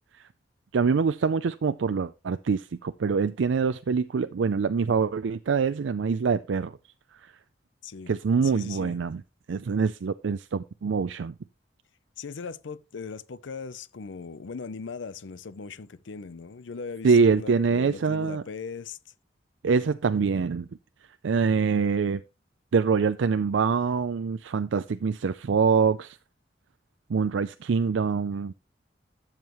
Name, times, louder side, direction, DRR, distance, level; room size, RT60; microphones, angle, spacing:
voice 1, 0.7-6.8 7.2-7.3 8.1-9.2 9.5-11.3 17.0-18.4 19.6-20.7 21.2-22.2 22.7-26.2 27.1-28.5, right 5 dB, 80° right, 0.4 m, -25 dB
voice 2, 7.8-8.1 8.4-9.0 12.2-19.0, left 5 dB, 80° left, 0.6 m, -39 dB
12.5 x 7.3 x 3.0 m
head